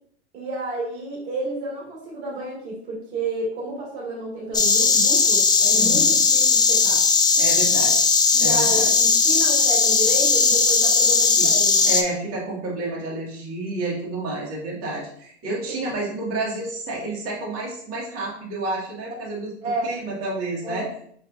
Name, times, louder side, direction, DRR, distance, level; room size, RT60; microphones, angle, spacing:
voice 1, 0.3-7.0 8.3-12.0 15.7-15.8 19.6-19.9 20.6-20.9, right 2 dB, 70° right, -4 dB, 1.8 m, -31 dB
Insect, 4.5-12.0, left 4 dB, 15° left, 0.4 m, -18 dB
voice 2, 5.7-6.1 7.3-8.1 8.4-8.9 11.4-11.5 11.8-20.8, right 2 dB, 45° right, -4 dB, 1.9 m, -30 dB
5.8 x 3.2 x 2.5 m, 0.65 s
hypercardioid pair, 100°, 34 cm